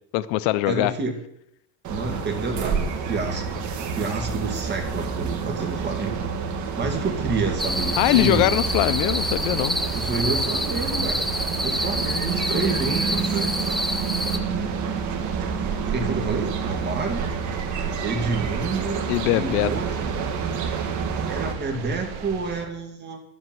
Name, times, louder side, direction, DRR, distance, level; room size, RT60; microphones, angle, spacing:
voice 1, 0.1-0.9 8.0-9.8 19.1-19.7, left 17 dB, 65° left, 15 dB, 0.6 m, -21 dB
voice 2, 0.7-1.1 1.9-6.2 6.7-8.5 9.9-11.2 11.6-13.6 15.9-17.3 18.0-19.0 19.3-19.9 21.3-23.2, right 3 dB, 25° right, 2 dB, 2.3 m, -29 dB
sound 1, 1.8-21.5, right 5 dB, 40° right, 1.9 m, -28 dB
sound 2, 6.8-22.7, right 7 dB, 60° right, 1.9 m, -38 dB
sound 3, 7.6-14.4, equal, ahead, 0.5 m, -28 dB
12.0 x 7.9 x 7.6 m, 0.76 s
cardioid pair, 150°, 44 cm